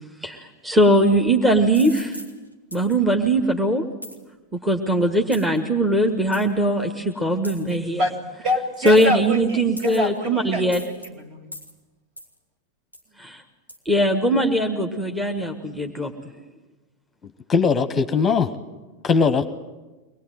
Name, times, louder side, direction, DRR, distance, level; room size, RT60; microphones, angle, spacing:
voice 1, 0.2-2.2 2.7-3.9 4.5-8.0 8.8-10.8 13.2-13.4 13.8-16.1, right 1 dB, 5° right, 4 dB, 1.6 m, -20 dB
sound 1, 1.7-2.3 2.7-3.0 4.0-4.2 5.3-5.6 6.3-6.4 7.4-7.8 8.9-9.3 9.8-10.2 10.7-11.1 11.5-11.7 12.2-12.3 12.9-13.1 13.7-13.8, equal, 90° right, 2.8 m, -38 dB
voice 2, 7.7-8.1 8.4-11.5, equal, 40° right, 6 dB, 3.3 m, -27 dB
voice 3, 17.5-18.5 19.0-19.4, left 5 dB, 20° left, 11 dB, 1.1 m, -19 dB
23.5 x 20.0 x 9.2 m, 1.2 s
figure-of-eight pair, 90°, 0 cm